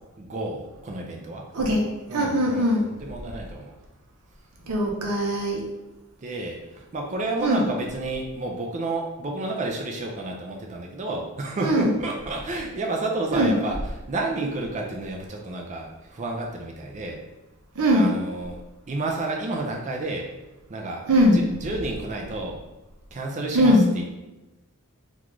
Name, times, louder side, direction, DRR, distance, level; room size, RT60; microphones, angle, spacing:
voice 1, 0.2-1.4 2.1-3.6 6.2-6.6 6.9-13.8 14.1-15.9 16.2-17.2 17.9-18.6 18.9-20.3 20.7-21.0 21.6-22.5 23.1-23.7, right 2 dB, 30° right, 1 dB, 0.3 m, -30 dB
voice 2, 1.5-2.8 4.7-5.6 7.4-7.7 11.6-11.9 13.3-13.6 17.8-18.1 21.1-21.4 23.5-23.9, equal, 80° right, 0 dB, 0.6 m, -21 dB
3.6 x 2.4 x 3.0 m, 1.1 s
head